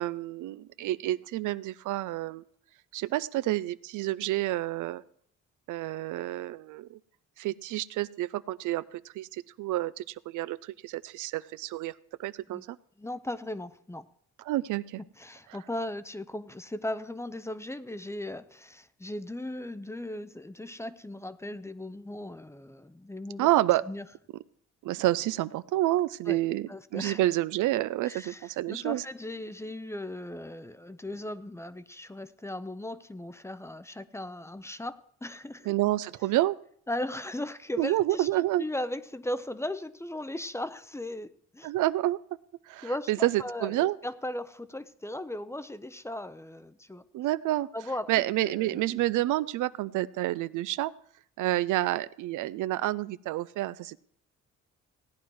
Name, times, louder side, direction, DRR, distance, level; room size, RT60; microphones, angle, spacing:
voice 1, 0.0-2.4 2.9-5.0 5.7-7.0 7.4-11.9 12.2-12.8 14.5-15.0 23.4-23.8 24.8-29.0 35.7-36.6 37.8-38.6 41.6-42.2 42.7-44.0 47.1-47.7 48.1-50.9 51.4-54.0, right 16 dB, 80° right, 17 dB, 0.5 m, -29 dB
voice 2, 13.0-14.1 15.2-23.5 23.9-24.0 26.3-26.4 26.7-27.2 28.1-35.7 36.9-41.7 42.8-47.0 47.7-48.1 48.4-48.9, left 1 dB, 10° left, 14 dB, 0.6 m, -37 dB
16.5 x 9.4 x 4.7 m, 0.63 s
cardioid pair, 90°, 30 cm